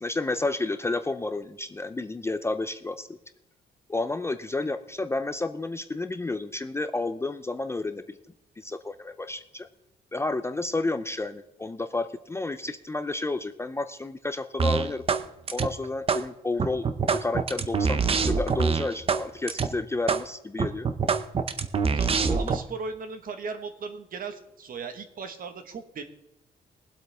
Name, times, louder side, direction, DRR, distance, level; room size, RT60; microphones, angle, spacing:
voice 1, 0.0-3.2 3.9-8.2 8.6-9.7 10.1-15.0 15.5-16.9 17.1-20.9 22.3-22.6, left 2 dB, 15° left, 9 dB, 0.4 m, -31 dB
sound 1, 14.6-15.2 15.5-16.2 16.6-19.2 19.5-19.7 20.1-20.2 20.6-22.6, right 5 dB, 30° right, 0.7 m, -25 dB
voice 2, 21.9-26.0, right 4 dB, 50° right, 7 dB, 1.4 m, -37 dB
21.5 x 8.0 x 3.5 m, 0.89 s
cardioid pair, 150°, 18 cm